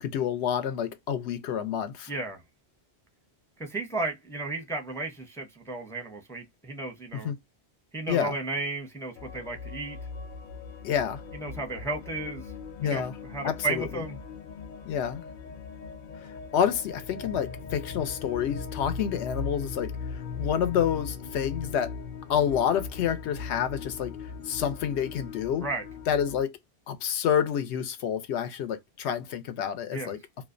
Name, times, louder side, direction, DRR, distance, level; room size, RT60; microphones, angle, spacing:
voice 1, 0.0-2.1 7.2-7.3 8.1-8.3 10.8-11.2 12.8-13.1 13.4-13.8 14.8-15.2 16.2-19.9 20.3-21.9 22.3-24.1 24.5-25.6 26.1-26.6 26.9-30.2, left 8 dB, 85° left, 0.9 m, -28 dB
voice 2, 2.1-2.4 3.6-7.3 7.9-10.0 11.3-12.5 12.8-13.0 13.3-14.2 25.6-25.9 29.9-30.1, right 3 dB, 5° left, 0.5 m, -34 dB
sound 1, 9.2-26.4, left 5 dB, 60° left, 0.6 m, -39 dB
2.5 x 2.1 x 2.4 m
omnidirectional pair, 1.1 m